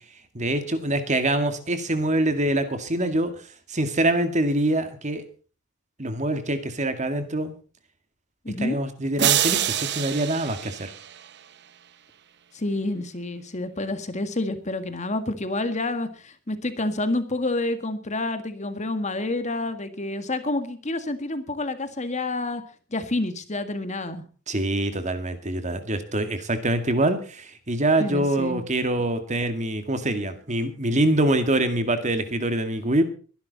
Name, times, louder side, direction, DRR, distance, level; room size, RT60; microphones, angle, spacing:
voice 1, 0.3-3.3 3.7-5.2 6.0-7.5 8.6-10.9 24.5-33.0, right 1 dB, 35° right, 9 dB, 2.1 m, -24 dB
voice 2, 8.5-8.8 12.5-22.6 22.9-24.2 28.0-28.6, left 2 dB, 35° left, 10 dB, 1.9 m, -28 dB
sound 1, 9.2-11.5, right 11 dB, 55° right, 0.8 m, -26 dB
22.5 x 11.5 x 4.1 m, 0.39 s
head